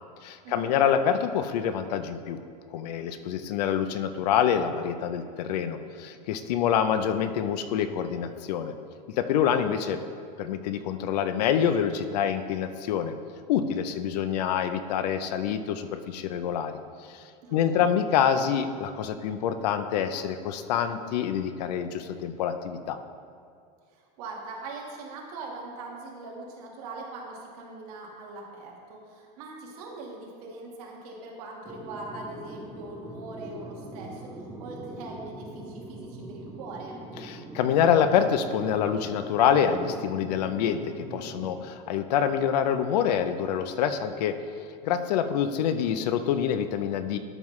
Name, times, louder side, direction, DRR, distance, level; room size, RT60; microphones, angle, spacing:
voice 1, 0.2-2.4 2.7-8.7 9.2-10.0 10.4-13.1 13.5-16.8 17.1-17.2 17.5-23.0 37.2-44.4 44.8-47.2, left 8 dB, 80° left, 10 dB, 0.6 m, -26 dB
voice 2, 17.4-17.9 23.9-37.0, right 3 dB, 65° right, -1 dB, 1.7 m, -41 dB
sound 1, 31.6-41.5, right 1 dB, 5° right, 0.7 m, -42 dB
12.0 x 5.5 x 3.2 m, 2.4 s
supercardioid pair, 175°, 20 cm